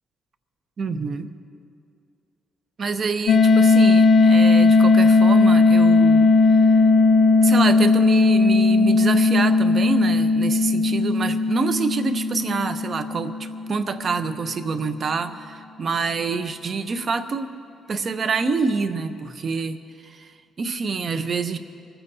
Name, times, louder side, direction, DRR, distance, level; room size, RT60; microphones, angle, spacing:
voice 1, 0.8-1.3 2.8-6.8 7.4-17.5 17.9-21.6, right 4 dB, 45° right, 11 dB, 0.8 m, -27 dB
sound 1, 3.3-14.0, left 3 dB, 55° left, 0.5 m, -17 dB
24.5 x 15.0 x 2.8 m, 2.4 s
cardioid pair, 90°, 0 cm